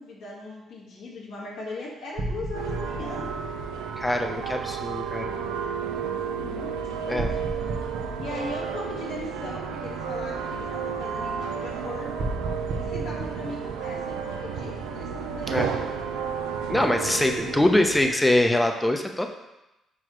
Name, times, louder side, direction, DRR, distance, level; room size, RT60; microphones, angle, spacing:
voice 1, 0.0-3.3 6.2-7.5 8.2-12.2 12.8-15.8, left 2 dB, 75° left, -4 dB, 1.8 m, -38 dB
sound 1, 2.2-4.3 7.2-9.2 12.2-14.7, right 2 dB, 65° right, 0.8 m, -34 dB
sound 2, 2.5-18.1, right 7 dB, 85° right, 0.5 m, -32 dB
voice 2, 4.0-5.3 7.1-7.3 15.5-15.7 16.7-19.3, left 1 dB, 10° left, 4 dB, 0.8 m, -23 dB
6.3 x 4.8 x 3.1 m, 0.96 s
supercardioid pair, 55°, 0 cm